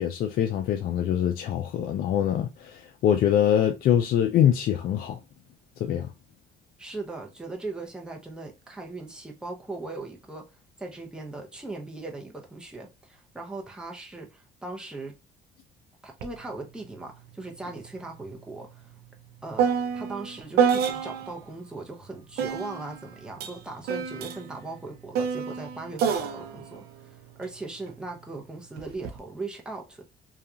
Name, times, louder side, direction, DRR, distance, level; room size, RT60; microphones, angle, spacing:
voice 1, 0.0-5.2 5.8-6.1, left 10 dB, 60° left, 0.4 m, -24 dB
voice 2, 6.8-10.5 10.8-15.2 16.0-18.9 19.4-19.7 19.9-30.0, right 3 dB, 5° right, 0.7 m, -39 dB
sound 1, 16.2-16.4 16.7-21.4 22.4-27.9 28.8-29.2, right 7 dB, 70° right, 0.5 m, -29 dB
2.8 x 2.4 x 2.4 m
cardioid pair, 110°, 17 cm